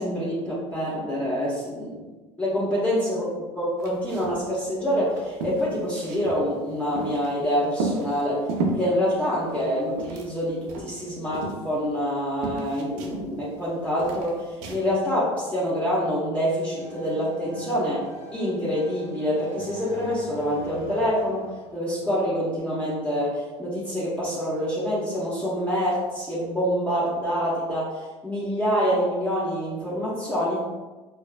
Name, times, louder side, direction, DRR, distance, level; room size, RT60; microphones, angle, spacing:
voice 1, 0.0-2.0 2.4-8.4 8.7-14.4 14.7-18.0 18.3-21.4 21.7-30.6, equal, 10° left, -8 dB, 1.3 m, -26 dB
sound 1, 3.8-4.5 4.7-4.8 5.1-7.4 7.7-8.9 9.5-10.4 10.7-12.1 12.4-13.7 14.0-14.8, right 3 dB, 65° right, 0.6 m, -32 dB
sound 2, 16.8-22.5, left 2 dB, 65° left, 0.7 m, -43 dB
4.5 x 2.1 x 2.4 m, 1.2 s
hypercardioid pair, 70°, 15 cm